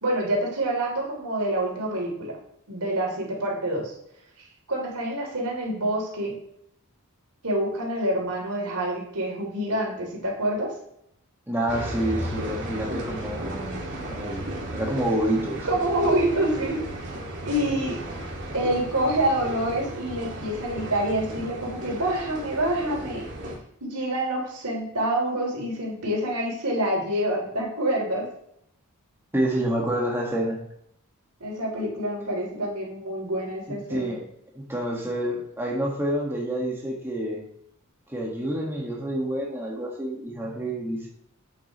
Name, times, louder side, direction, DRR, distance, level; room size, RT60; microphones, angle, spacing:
voice 1, 0.0-2.4 2.7-3.9 4.7-6.3 7.4-10.7 15.6-17.2 17.4-18.0 18.5-23.3 23.8-28.3 31.4-34.1, right 1 dB, 85° right, -1 dB, 3.2 m, -27 dB
voice 2, 11.5-13.8 14.1-15.8 29.3-30.6 33.9-34.2 34.5-37.4 38.1-41.1, right 1 dB, 10° right, -3 dB, 1.7 m, -28 dB
sound 1, 11.7-23.6, right 1 dB, 55° right, 2.3 m, -35 dB
8.6 x 8.5 x 3.1 m, 0.73 s
head